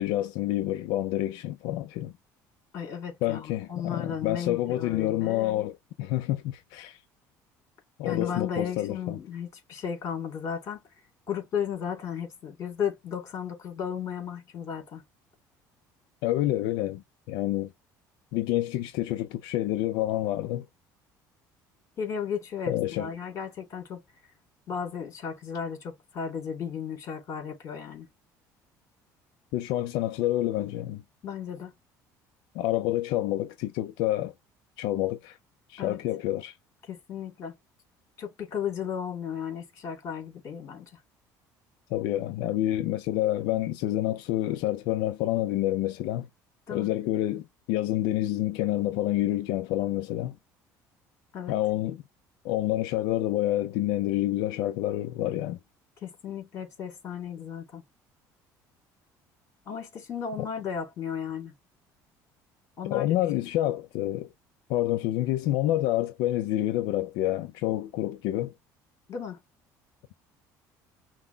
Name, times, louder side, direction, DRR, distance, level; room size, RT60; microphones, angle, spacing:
voice 1, 0.0-2.1 3.2-7.0 8.0-9.2 16.2-17.7 18.3-20.7 22.7-23.1 29.5-31.0 32.5-34.3 34.8-35.4 35.7-36.5 41.9-46.3 46.7-50.4 51.5-52.0 52.4-55.6 62.9-64.3 64.7-68.5, left 14 dB, 85° left, 0.5 m, -28 dB
voice 2, 2.7-5.6 8.0-10.8 11.3-15.0 22.0-24.0 24.7-28.1 31.2-31.7 35.8-36.0 36.9-37.6 38.2-40.9 46.7-46.9 51.3-51.6 56.0-57.8 59.6-61.5 62.8-63.1 69.1-69.4, left 7 dB, 40° left, 3.1 m, -34 dB
5.9 x 2.2 x 3.4 m
cardioid pair, 140°, 7 cm